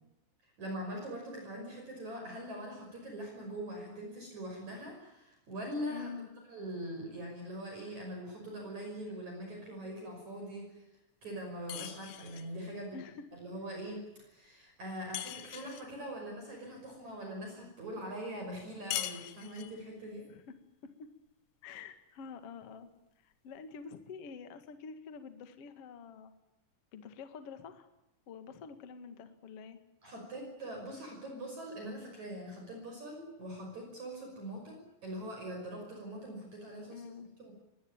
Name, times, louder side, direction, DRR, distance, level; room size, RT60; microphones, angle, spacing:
voice 1, 0.4-6.1 6.5-10.9 11.2-13.0 13.3-20.3 30.0-37.0 37.4-37.5, equal, 35° right, 2 dB, 6.7 m, -42 dB
voice 2, 5.9-6.3 12.9-13.3 20.3-20.6 20.8-21.1 21.6-22.9 23.2-26.3 26.9-27.9 28.3-29.8 36.9-37.3, left 5 dB, 55° left, 9 dB, 1.7 m, -47 dB
sound 1, 11.7-12.5 15.1-15.9 18.9-19.8, left 13 dB, 80° left, 3.5 m, -40 dB
24.0 x 20.0 x 8.9 m, 0.92 s
omnidirectional pair, 5.8 m